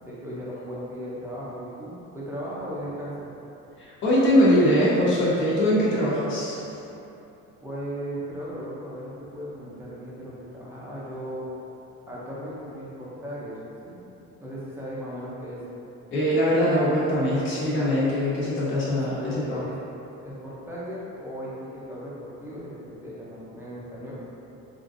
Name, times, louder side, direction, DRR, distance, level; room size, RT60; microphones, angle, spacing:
voice 1, 0.1-3.3 7.6-11.5 12.1-14.0 14.4-15.6 18.8-19.8 20.2-24.2, equal, 10° right, -8 dB, 0.5 m, -37 dB
voice 2, 3.8-6.6 16.1-19.6, equal, 40° left, -8 dB, 1.0 m, -22 dB
4.8 x 2.5 x 2.5 m, 2.9 s
cardioid pair, 175°, 31 cm